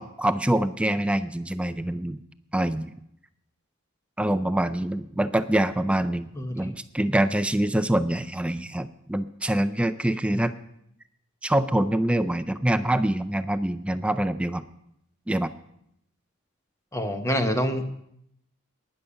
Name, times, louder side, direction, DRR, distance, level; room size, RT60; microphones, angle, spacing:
voice 1, 0.0-2.2 2.5-2.9 4.2-6.3 6.6-10.5 11.4-14.6 15.3-15.5, right 1 dB, 5° right, 11 dB, 0.3 m, -25 dB
voice 2, 6.3-6.7 10.3-10.5 16.9-17.8, equal, 15° left, 6 dB, 0.9 m, -27 dB
12.0 x 10.0 x 5.7 m, 0.75 s
head